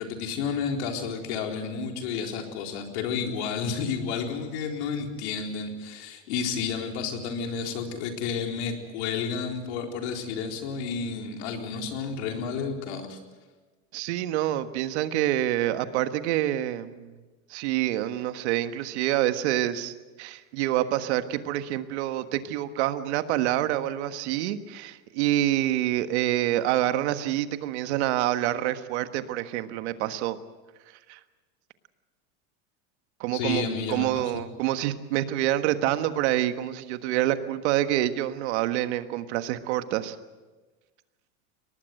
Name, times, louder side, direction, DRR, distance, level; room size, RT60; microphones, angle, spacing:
voice 1, 0.0-13.2 33.3-34.4, left 6 dB, 80° left, 3 dB, 4.1 m, -31 dB
voice 2, 13.9-17.1 17.5-30.4 31.1-31.2 33.2-40.1, right 13 dB, 80° right, 10 dB, 1.5 m, -27 dB
23.0 x 19.0 x 7.8 m, 1.2 s
supercardioid pair, 110°, 33 cm